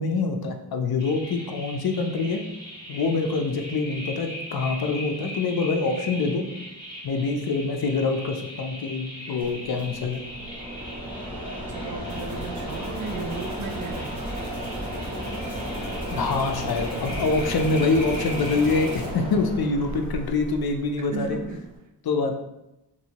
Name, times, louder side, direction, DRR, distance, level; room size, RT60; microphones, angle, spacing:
voice 1, 0.0-2.4 2.9-6.4 7.0-10.2 16.1-21.4 22.1-22.3, left 3 dB, 60° left, 5 dB, 0.5 m, -25 dB
sound 1, 1.0-19.0, left 1 dB, 10° left, 1.2 m, -40 dB
Mechanisms, 9.4-21.8, equal, 10° right, 1.3 m, -34 dB
voice 2, 11.6-14.3 21.1-21.6, right 4 dB, 50° right, 4 dB, 0.4 m, -35 dB
sound 2, 12.1-19.1, right 3 dB, 75° right, 0.9 m, -50 dB
3.0 x 2.6 x 2.8 m, 0.90 s
cardioid pair, 70°, 41 cm